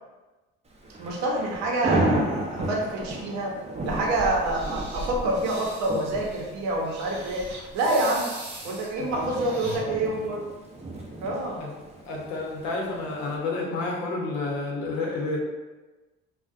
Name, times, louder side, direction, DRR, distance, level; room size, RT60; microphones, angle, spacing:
Thunder / Rain, 0.7-13.4, right 1 dB, 20° right, 0.5 m, -34 dB
voice 1, 1.0-3.6 3.8-7.5 7.7-8.3 8.6-10.5 11.2-11.6, right 2 dB, 70° right, -1 dB, 0.7 m, -27 dB
sound 1, 3.9-9.8, right 2 dB, 40° right, 0.9 m, -42 dB
voice 2, 8.9-9.9 11.6-15.4, left 3 dB, 75° left, -2 dB, 0.7 m, -31 dB
2.5 x 2.1 x 2.4 m, 1.2 s
supercardioid pair, 70°, 29 cm